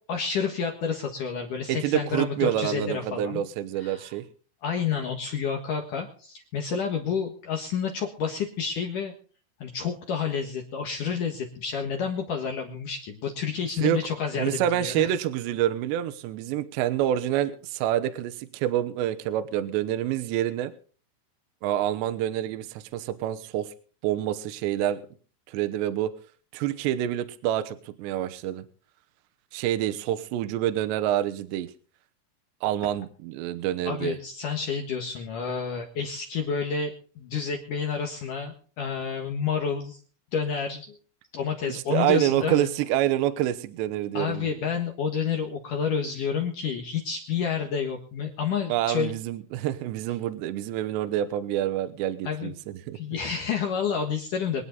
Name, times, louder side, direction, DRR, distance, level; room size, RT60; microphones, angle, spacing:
voice 1, 0.1-3.4 3.8-4.1 4.6-9.1 9.6-15.1 33.8-40.0 40.3-41.0 41.3-42.7 44.1-49.1 52.2-52.5 52.9-54.6, left 6 dB, 60° left, 2 dB, 2.3 m, -29 dB
voice 2, 1.7-4.2 13.8-14.0 14.4-20.7 21.6-23.7 24.0-25.0 25.5-26.1 26.5-28.6 29.5-31.7 32.6-34.2 41.7-44.5 48.7-53.1, right 12 dB, 75° right, 9 dB, 2.9 m, -27 dB
24.5 x 9.8 x 4.0 m, 0.41 s
omnidirectional pair, 5.7 m